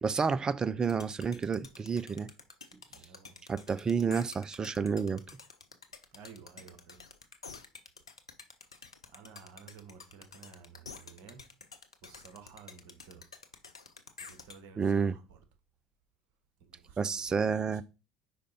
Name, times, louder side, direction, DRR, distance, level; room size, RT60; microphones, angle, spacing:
voice 1, 0.0-2.3 3.5-5.2 14.8-15.2 17.0-17.8, right 5 dB, 25° right, 0.4 m, -30 dB
sound 1, 0.9-14.6, left 5 dB, 85° left, 0.5 m, -49 dB
voice 2, 2.9-3.4 6.1-7.1 9.1-11.5 12.0-13.3 14.2-15.4 16.6-17.8, right 6 dB, 55° right, 1.5 m, -54 dB
5.0 x 5.0 x 4.3 m
figure-of-eight pair, 65°, 3 cm